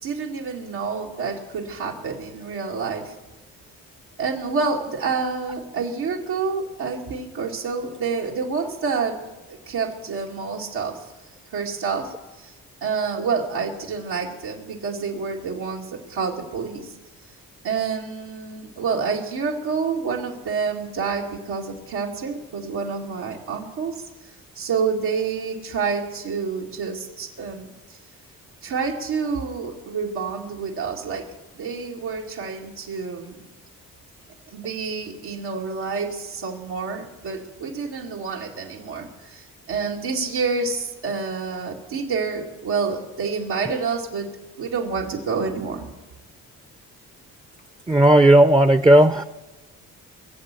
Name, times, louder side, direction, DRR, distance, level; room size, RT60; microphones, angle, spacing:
voice 1, 0.0-3.1 4.2-9.2 9.5-11.0 11.5-12.5 12.8-16.9 17.6-24.0 24.6-27.7 28.6-31.3 31.5-33.4 34.5-44.3 44.6-45.9, right 5 dB, 85° right, -2 dB, 2.2 m, -28 dB
voice 2, 47.9-49.2, right 1 dB, 10° right, 11 dB, 0.6 m, -14 dB
21.0 x 7.5 x 8.2 m, 1.2 s
supercardioid pair, 60°, 38 cm